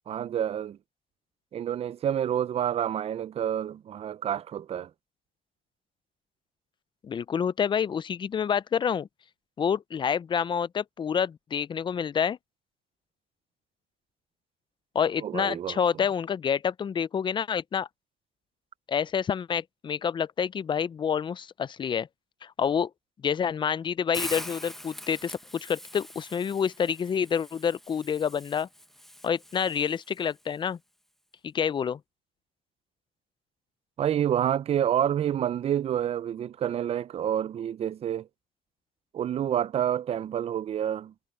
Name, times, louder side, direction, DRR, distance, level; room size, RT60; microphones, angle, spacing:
voice 1, 0.1-0.8 1.5-4.9 15.2-15.8 34.0-38.3 39.1-41.1, right 10 dB, 35° right, 0.4 m, -28 dB
voice 2, 7.0-9.1 9.6-12.4 14.9-17.9 18.9-22.1 22.4-22.9 23.2-28.7 29.2-30.8 31.4-32.0, left 7 dB, 30° left, 0.4 m, -28 dB
Hiss, 24.1-30.2, equal, ahead, 0.9 m, -43 dB
cardioid pair, 110°, 17 cm